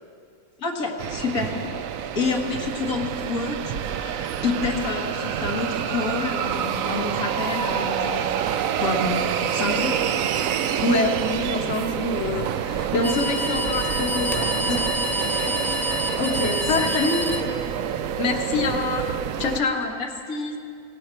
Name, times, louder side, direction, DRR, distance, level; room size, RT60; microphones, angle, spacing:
voice 1, 0.6-1.5 2.2-8.4 8.8-10.2 15.4-15.6 16.8-17.6 20.0-20.6, left 4 dB, 80° left, 1 dB, 2.1 m, -28 dB
sound 1, 1.0-19.6, right 9 dB, 75° right, 1.0 m, -27 dB
voice 2, 10.8-14.9 16.2-17.1 18.2-19.1 19.4-19.9, left 3 dB, 55° left, 3 dB, 1.5 m, -25 dB
sound 2, 13.0-18.0, left 1 dB, ahead, 1.1 m, -28 dB
18.0 x 17.5 x 4.5 m, 2.3 s
omnidirectional pair, 1.5 m